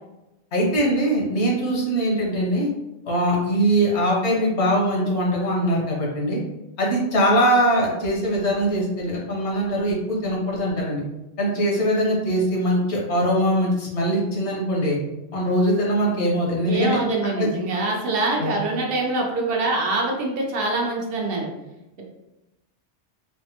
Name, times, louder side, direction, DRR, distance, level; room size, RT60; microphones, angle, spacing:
voice 1, 0.5-2.7 3.0-6.4 6.8-11.0 11.4-15.0 15.3-17.0 17.4-17.5 18.4-18.5, equal, 75° left, -3 dB, 1.2 m, -22 dB
voice 2, 16.7-21.5, right 2 dB, 60° right, 0 dB, 0.8 m, -24 dB
3.4 x 2.1 x 2.8 m, 0.95 s
omnidirectional pair, 1.2 m